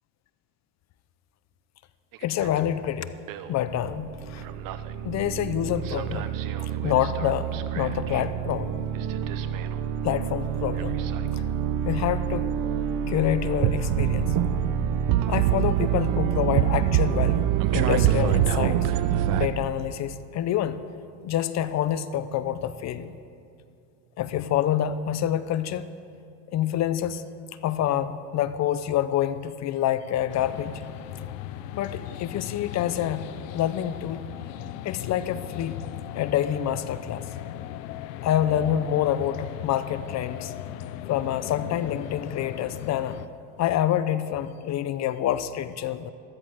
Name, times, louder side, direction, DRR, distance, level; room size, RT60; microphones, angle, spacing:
sound 1, 2.1-2.6 3.3-3.5 3.9-19.5, right 10 dB, 45° right, 0.8 m, -26 dB
voice 1, 2.2-3.1 3.5-4.4 5.0-6.3 6.8-8.8 10.0-11.0 11.9-12.5 13.1-14.3 15.2-18.9 19.3-20.8 21.2-23.2 24.2-25.9 26.5-27.2 27.6-30.8 31.7-33.3 33.5-34.2 34.8-35.7 36.1-37.3 38.2-40.5 41.1-43.2 43.6-46.1, left 11 dB, 35° left, 13 dB, 0.7 m, -27 dB
sound 2, 30.3-43.3, left 12 dB, 75° left, 0.9 m, -37 dB
13.5 x 13.5 x 7.7 m, 2.5 s
supercardioid pair, 125°, 49 cm